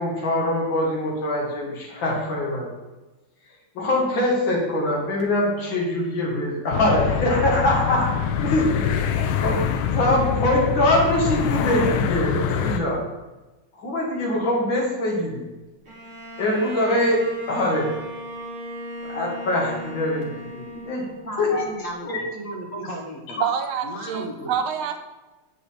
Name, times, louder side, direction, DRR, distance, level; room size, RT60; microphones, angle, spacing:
voice 1, 0.0-2.7 3.8-8.1 8.4-13.1 13.8-15.4 16.4-18.0 19.0-21.0 21.4-21.6 22.1-22.2, left 1 dB, 65° left, -2 dB, 2.2 m, -23 dB
sound 1, 6.7-12.8, left 8 dB, 80° left, 1.4 m, -24 dB
Bowed string instrument, 15.8-21.6, equal, 35° right, 1.5 m, -37 dB
voice 2, 20.7-23.5 23.8-24.6, right 1 dB, 50° left, 0 dB, 1.1 m, -35 dB
voice 3, 23.4-25.0, right 8 dB, 85° right, 7 dB, 1.5 m, -26 dB
7.5 x 5.0 x 4.2 m, 1.1 s
omnidirectional pair, 2.3 m